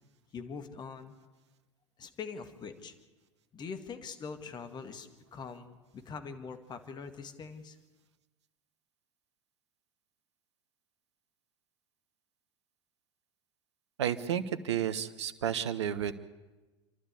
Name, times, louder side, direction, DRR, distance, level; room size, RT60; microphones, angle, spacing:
voice 1, 0.3-1.1 2.0-2.9 3.5-7.8, left 5 dB, 30° left, 7 dB, 2.0 m, -43 dB
voice 2, 14.0-16.2, right 9 dB, 65° right, 13 dB, 1.2 m, -32 dB
28.5 x 12.0 x 8.5 m, 1.2 s
figure-of-eight pair, 80°, 15 cm